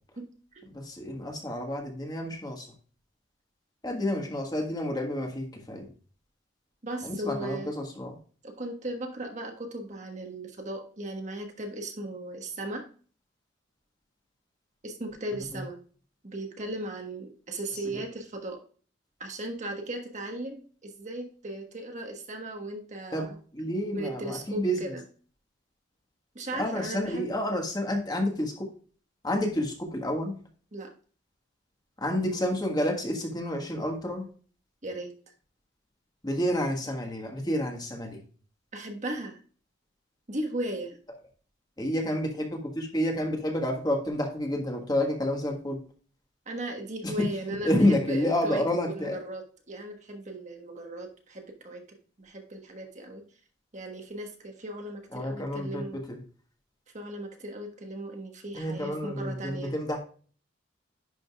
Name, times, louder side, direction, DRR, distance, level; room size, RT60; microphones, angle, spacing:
voice 1, 0.2-0.6 6.8-7.7 8.4-12.9 14.8-15.8 16.2-18.6 19.2-23.4 23.9-25.0 26.3-27.3 30.7-30.9 34.8-35.1 38.7-39.4 40.3-41.0 46.4-51.8 52.2-53.2 53.7-56.0 56.9-59.7, right 1 dB, 40° right, 3 dB, 1.3 m, -37 dB
voice 2, 0.7-2.7 3.8-5.9 7.0-8.2 15.5-15.6 17.9-18.0 23.1-24.9 26.5-28.7 29.2-30.4 32.0-34.3 36.2-38.2 41.8-45.8 47.0-47.3 47.6-49.2 55.1-56.2 58.5-60.0, left 1 dB, 20° left, 2 dB, 1.5 m, -29 dB
10.5 x 5.2 x 2.3 m, 0.41 s
head